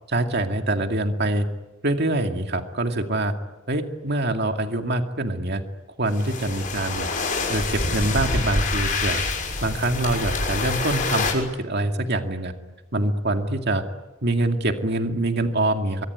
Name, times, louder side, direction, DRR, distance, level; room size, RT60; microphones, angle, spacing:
voice 1, 0.1-1.5 1.8-3.3 3.7-5.6 6.0-7.1 7.5-9.2 9.6-12.5 12.9-13.8 14.2-16.0, right 1 dB, 50° right, 5 dB, 2.2 m, -24 dB
sound 1, 6.1-11.3, left 3 dB, 40° left, 6.5 m, -26 dB
24.0 x 23.5 x 9.5 m, 1.1 s
head